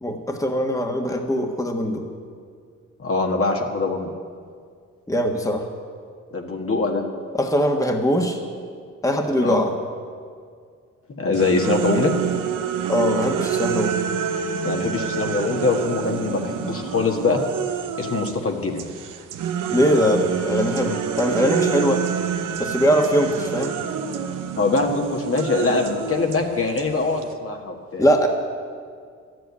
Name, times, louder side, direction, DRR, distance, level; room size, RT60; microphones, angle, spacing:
voice 1, 0.0-2.0 5.1-5.7 7.3-8.4 9.0-9.7 12.9-14.0 19.7-22.0 22.6-23.7 28.0-28.3, equal, 10° left, 3 dB, 1.5 m, -21 dB
voice 2, 3.0-4.2 6.3-7.0 9.4-9.6 11.1-12.1 14.6-17.4 18.0-18.9 24.6-28.0, left 3 dB, 45° left, 2 dB, 1.7 m, -23 dB
sound 1, 11.3-18.4 18.8-27.3, right 8 dB, 85° right, 0.9 m, -27 dB
12.5 x 7.8 x 9.7 m, 2.1 s
cardioid pair, 70°, 31 cm